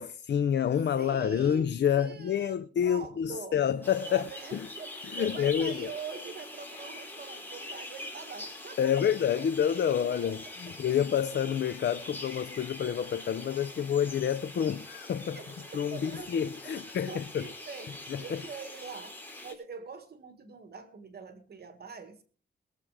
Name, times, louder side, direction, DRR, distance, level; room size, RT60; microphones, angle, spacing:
voice 1, 0.0-4.7 5.1-5.9 8.8-15.4 15.7-17.5 18.1-18.4, left 8 dB, 65° left, 0.6 m, -28 dB
voice 2, 1.0-1.7 2.0-2.5 2.8-3.6 4.0-8.9 9.4-9.5 9.9-10.4 15.3-16.3 16.6-22.2, right 5 dB, 55° right, 1.8 m, -44 dB
sound 1, 3.8-19.5, left 2 dB, 10° left, 3.8 m, -44 dB
21.5 x 7.6 x 4.9 m
wide cardioid pair, 125°, 19 cm